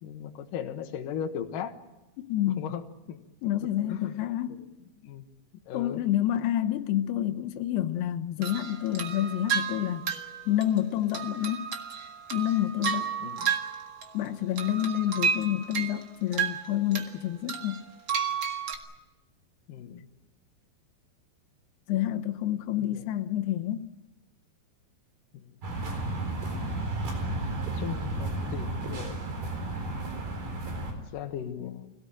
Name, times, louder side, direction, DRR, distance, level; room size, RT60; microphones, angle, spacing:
voice 1, 0.0-1.7 2.5-3.2 3.9-4.3 5.0-5.3 5.7-6.0 13.2-13.6 15.2-15.3 19.7-20.1 22.8-23.0 25.3-25.5 27.6-29.2 31.1-31.9, left 8 dB, 65° left, 2.7 m, -37 dB
voice 2, 2.3-2.7 3.4-4.7 5.7-10.1 10.5-11.7 12.3-13.1 14.1-17.8 21.9-23.9, left 12 dB, 90° left, 3.0 m, -28 dB
sound 1, 8.4-14.3 14.6-17.1 17.5-18.8, right 7 dB, 45° right, 1.7 m, -32 dB
sound 2, 25.6-30.9, right 2 dB, 80° right, 6.2 m, -32 dB
24.5 x 17.5 x 9.0 m
omnidirectional pair, 4.5 m